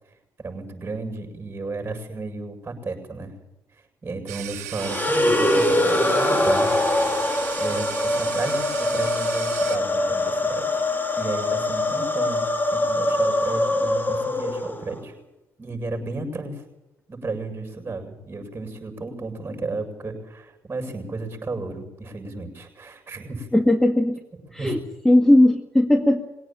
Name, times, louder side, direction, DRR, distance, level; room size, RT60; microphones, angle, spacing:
voice 1, 0.4-3.4 4.0-6.7 7.6-10.8 11.2-12.4 12.7-15.1 15.6-16.6 17.1-23.5 24.6-24.8, right 3 dB, 25° right, 5 dB, 7.5 m, -33 dB
sound 1, 4.3-9.8, right 13 dB, 90° right, 1.6 m, -36 dB
sound 2, 4.8-15.0, left 1 dB, 25° left, 3.1 m, -23 dB
voice 2, 23.5-24.2 24.5-24.8 25.1-26.2, left 1 dB, 5° left, 6 dB, 2.1 m, -17 dB
22.0 x 17.5 x 9.2 m, 0.94 s
hypercardioid pair, 55°, 8 cm